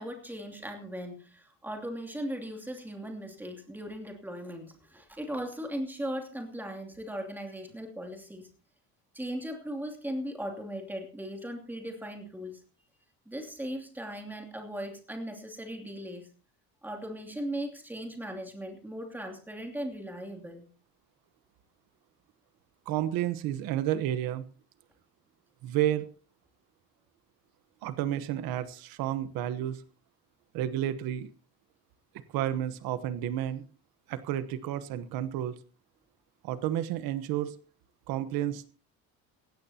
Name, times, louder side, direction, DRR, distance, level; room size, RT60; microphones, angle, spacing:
voice 1, 0.0-8.5 9.1-12.6 13.3-16.3 16.8-20.6, equal, 5° right, 3 dB, 2.8 m, -38 dB
voice 2, 22.9-24.4 25.6-26.1 27.8-29.8 30.5-31.3 32.3-33.6 34.1-35.6 36.4-37.5 38.1-38.7, right 12 dB, 75° right, 12 dB, 1.2 m, -31 dB
18.0 x 16.0 x 2.9 m, 0.37 s
cardioid pair, 155°, 36 cm